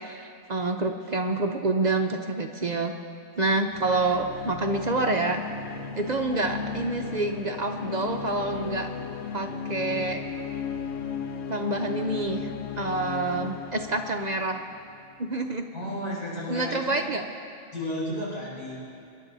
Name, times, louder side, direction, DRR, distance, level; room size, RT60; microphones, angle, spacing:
voice 1, 0.0-2.9 3.4-5.4 6.0-8.9 9.3-10.2 11.5-12.5 12.8-14.6 15.2-15.7 16.5-17.2, right 2 dB, 50° right, 4 dB, 0.5 m, -27 dB
sound 1, 3.7-15.2, left 6 dB, 55° left, 0.9 m, -36 dB
voice 2, 15.7-17.0 17.7-18.8, equal, 85° left, -7 dB, 5.5 m, -33 dB
25.5 x 10.5 x 4.0 m, 2.4 s
omnidirectional pair, 1.5 m